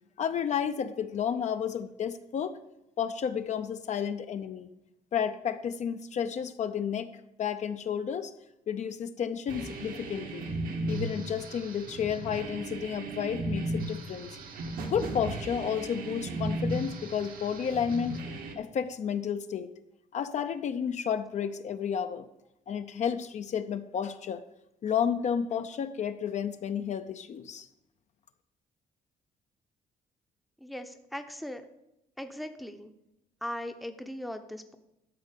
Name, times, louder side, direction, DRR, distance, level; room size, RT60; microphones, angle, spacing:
voice 1, 0.2-2.6 3.0-4.7 5.1-7.1 7.4-8.3 8.7-10.5 10.9-14.3 14.9-18.2 18.6-19.7 20.1-22.2 22.7-24.4 24.8-27.7, left 8 dB, 50° left, 9 dB, 0.5 m, -31 dB
sound 1, 9.5-18.5, right 2 dB, 70° right, 1.3 m, -36 dB
voice 2, 30.6-31.6 32.2-32.9 33.4-34.8, left 1 dB, ahead, 7 dB, 0.7 m, -39 dB
12.0 x 4.4 x 6.7 m, 0.87 s
cardioid pair, 130°, 15 cm